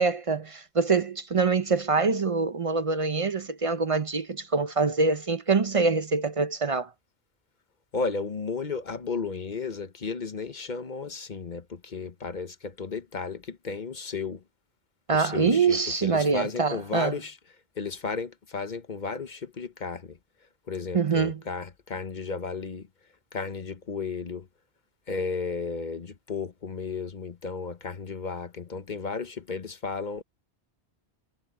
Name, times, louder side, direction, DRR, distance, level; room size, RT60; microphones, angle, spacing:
voice 1, 0.0-6.9 15.1-17.2 20.9-21.4, right 4 dB, 35° right, 0.6 m, -25 dB
voice 2, 7.9-14.4 15.1-17.4 17.8-20.2 20.7-22.9 23.3-24.5 25.1-30.2, left 4 dB, 45° left, 1.0 m, -34 dB
omnidirectional pair, 1.1 m